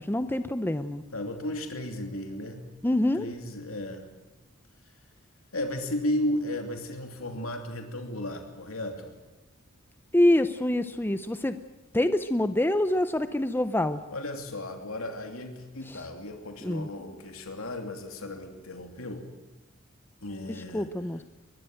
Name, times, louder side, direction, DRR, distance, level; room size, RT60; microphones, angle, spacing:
voice 1, 0.0-1.0 2.8-3.3 10.1-11.6 11.9-14.0 15.9-16.0 16.6-16.9 20.7-21.2, left 1 dB, 10° left, 10 dB, 0.7 m, -25 dB
voice 2, 1.1-2.6 3.1-4.1 5.5-9.1 14.1-19.3 20.2-20.9, left 1 dB, 75° left, 4 dB, 3.0 m, -34 dB
23.0 x 20.0 x 7.8 m, 1.1 s
head